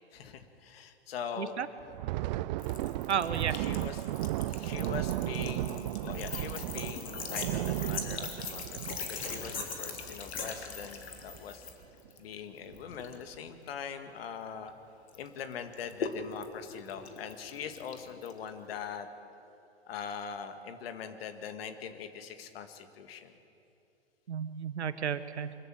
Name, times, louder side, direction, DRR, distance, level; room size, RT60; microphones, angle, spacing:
voice 1, 0.1-1.6 3.3-4.1 4.5-11.7 12.2-14.7 15.2-19.1 19.9-23.4, left 7 dB, 60° left, 8 dB, 2.0 m, -42 dB
Thunder, 1.8-10.9 11.2-11.4 11.8-12.1 12.7-13.2, right 16 dB, 45° right, 0.4 m, -35 dB
Sink (filling or washing) / Trickle dribble, 2.6-14.7 15.1-18.9, left 5 dB, 75° left, 2.3 m, -46 dB
voice 2, 3.1-3.6 24.3-25.6, right 7 dB, 80° right, 13 dB, 1.2 m, -32 dB
sound 1, 6.1-11.7, left 5 dB, 25° left, 3.4 m, -40 dB
24.0 x 14.0 x 9.1 m, 2.7 s
hypercardioid pair, 105°, 33 cm